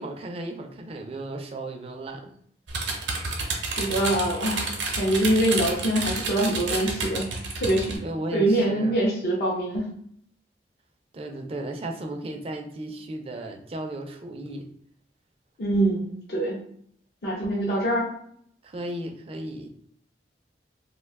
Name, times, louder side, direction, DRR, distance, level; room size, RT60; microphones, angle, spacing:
voice 1, 0.0-2.3 8.0-9.0 11.1-14.7 18.6-19.7, right 1 dB, 35° right, 4 dB, 0.3 m, -35 dB
sound 1, 2.7-8.0, right 3 dB, 85° right, 0.6 m, -30 dB
voice 2, 3.8-4.7 5.0-7.3 7.6-8.0 8.3-9.8 15.6-16.6 17.2-18.1, right 1 dB, 60° left, -4 dB, 0.5 m, -24 dB
2.6 x 2.2 x 3.4 m, 0.65 s
head